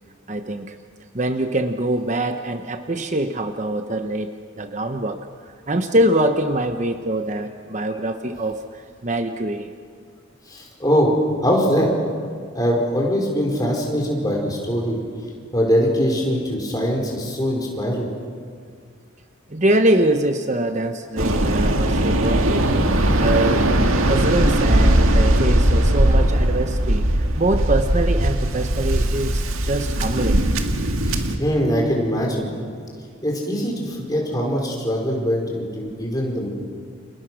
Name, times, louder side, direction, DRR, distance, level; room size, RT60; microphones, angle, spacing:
voice 1, 0.3-0.8 1.1-5.2 5.7-8.6 9.0-9.7 19.5-22.7 23.2-23.7 24.1-27.1 27.4-30.4, right 1 dB, 35° right, 7 dB, 0.9 m, -23 dB
voice 2, 10.5-11.1 11.4-11.9 12.5-15.0 15.5-18.1 31.0-32.5 33.2-36.5, equal, 20° left, 0 dB, 4.8 m, -22 dB
Waves surf, 21.2-31.4, right 1 dB, 85° right, 2.0 m, -19 dB
30.0 x 27.5 x 6.4 m, 2.1 s
head